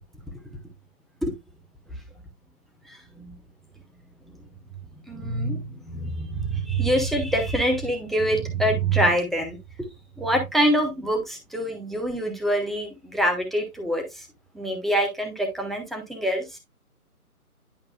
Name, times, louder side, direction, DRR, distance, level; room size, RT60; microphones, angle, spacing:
voice 1, 2.9-3.3 5.1-9.9 10.2-14.3 14.5-16.6, right 1 dB, ahead, 4 dB, 0.5 m, -25 dB
10.5 x 5.4 x 2.2 m, 0.20 s
figure-of-eight pair, 160°, 45 cm